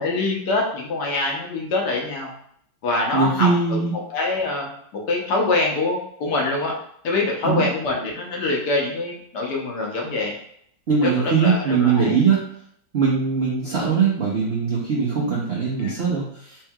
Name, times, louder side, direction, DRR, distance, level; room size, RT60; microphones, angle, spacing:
voice 1, 0.0-2.3 2.8-3.5 4.1-4.7 5.1-6.7 7.0-10.3 11.0-12.1 15.8-15.9, left 2 dB, 70° left, -1 dB, 1.3 m, -24 dB
voice 2, 3.1-3.9 7.4-7.7 10.9-12.4 12.9-16.6, right 5 dB, 60° right, -5 dB, 0.6 m, -21 dB
4.4 x 3.1 x 2.3 m, 0.66 s
omnidirectional pair, 2.0 m